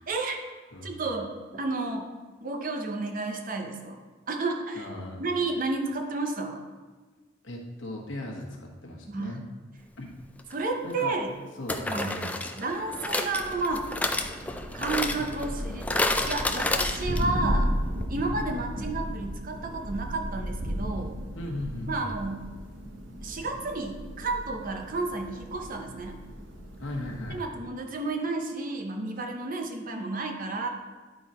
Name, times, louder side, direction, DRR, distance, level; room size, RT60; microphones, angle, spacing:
voice 1, 0.1-0.4 0.8-2.1 2.4-4.0 4.3-4.9 5.2-6.6 9.1-9.4 10.5-11.3 11.8-12.1 12.6-13.9 14.7-17.7 18.1-21.2 21.9-22.5 23.2-26.2 27.3-30.7, right 3 dB, 45° right, 4 dB, 0.8 m, -31 dB
voice 2, 4.7-5.2 7.4-9.4 10.0-10.1 10.8-11.2 11.6-12.4 21.3-22.0 26.8-27.4, left 1 dB, 70° left, -1 dB, 1.3 m, -37 dB
sound 1, 10.4-10.5 11.7-17.4 17.7-17.8 18.0-18.1, left 2 dB, 5° left, 0.3 m, -30 dB
Thunder, 13.0-27.6, equal, 70° right, 1.1 m, -35 dB
10.0 x 3.9 x 4.3 m, 1.4 s
head